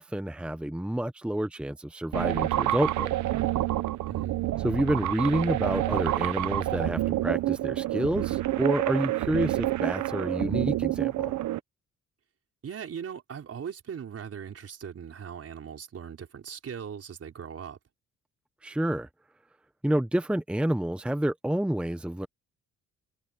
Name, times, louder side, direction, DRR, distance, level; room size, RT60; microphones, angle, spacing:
voice 1, 0.0-3.1 4.6-11.3 18.6-19.1 19.8-22.3, right 1 dB, 5° right, 0.8 m, -29 dB
sound 1, 2.1-11.6, right 14 dB, 75° right, 1.0 m, -28 dB
voice 2, 4.1-4.4 12.6-17.8, right 7 dB, 50° right, 4.8 m, -39 dB
cardioid pair, 90°, 30 cm